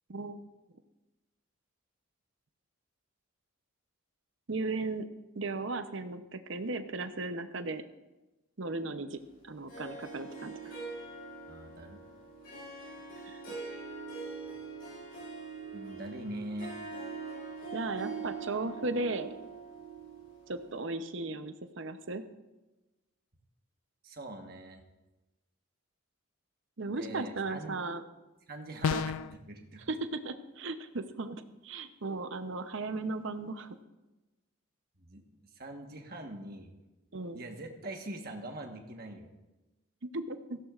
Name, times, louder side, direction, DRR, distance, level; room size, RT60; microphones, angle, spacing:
voice 1, 0.1-0.4 4.5-5.1 5.4-7.8 8.6-9.2 9.5-10.7 13.2-13.4 17.7-19.3 20.5-22.2 26.8-28.0 28.9-29.0 29.9-33.7 37.1-37.4 40.0-40.6, right 3 dB, 60° right, 9 dB, 0.8 m, -36 dB
Harp, 9.7-20.8, right 4 dB, 45° left, 5.0 m, -43 dB
voice 2, 11.5-12.0 15.7-16.7 24.0-24.8 26.8-27.8 28.5-29.9 35.0-35.2 35.5-36.7 37.3-39.3, right 1 dB, 45° right, 4 dB, 1.3 m, -43 dB
sound 1, 28.8-29.4, left 6 dB, 80° left, 0.4 m, -30 dB
17.0 x 15.0 x 2.5 m, 1.1 s
head